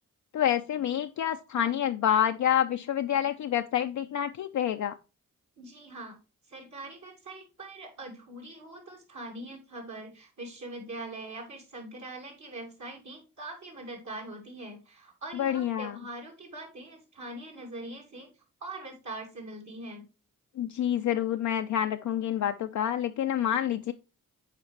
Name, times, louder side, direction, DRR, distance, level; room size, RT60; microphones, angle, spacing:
voice 1, 0.3-4.9 15.3-16.0 20.6-23.9, left 10 dB, 60° left, 0.5 m, -28 dB
voice 2, 5.6-6.2 6.5-18.3 18.6-20.1, right 2 dB, 60° right, 2.2 m, -42 dB
7.3 x 4.2 x 3.1 m
cardioid pair, 55°, 33 cm